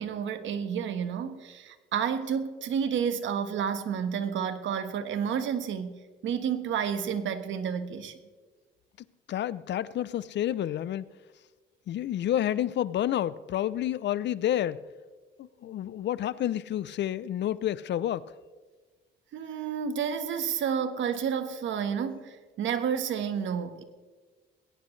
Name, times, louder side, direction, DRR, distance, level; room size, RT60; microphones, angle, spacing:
voice 1, 0.0-8.1 19.3-23.8, right 7 dB, 75° right, 1.4 m, -30 dB
voice 2, 9.3-11.1 11.9-14.8 15.4-18.3, left 11 dB, 65° left, 0.6 m, -29 dB
21.0 x 17.5 x 3.2 m
cardioid pair, 90°, 20 cm